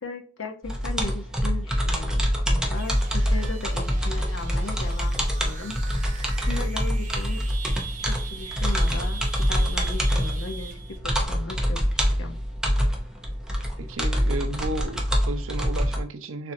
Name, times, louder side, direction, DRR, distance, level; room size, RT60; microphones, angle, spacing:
voice 1, 0.0-5.7 6.5-7.4 8.0-11.8 12.2-12.4, left 3 dB, 70° left, 5 dB, 0.7 m, -37 dB
sound 1, 0.6-16.0, equal, 5° right, 0.7 m, -25 dB
sound 2, 2.7-11.0, right 6 dB, 35° right, 0.8 m, -42 dB
voice 2, 13.8-16.5, right 2 dB, 80° right, 8 dB, 0.6 m, -33 dB
6.6 x 2.7 x 2.6 m, 0.43 s
head